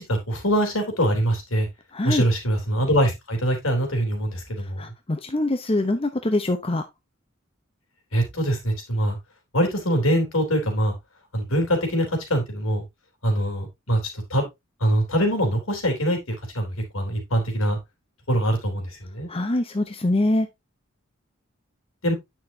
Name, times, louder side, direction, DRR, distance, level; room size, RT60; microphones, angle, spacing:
voice 1, 0.0-1.7 2.0-4.9 8.1-9.2 9.5-10.9 11.3-12.8 13.2-14.5 14.8-17.8 18.3-19.3 22.0-22.1, equal, 75° left, 3.4 m, -23 dB
voice 2, 1.9-2.2 4.8-6.8 19.3-20.5, left 1 dB, 30° left, 0.8 m, -24 dB
9.3 x 6.1 x 2.7 m
head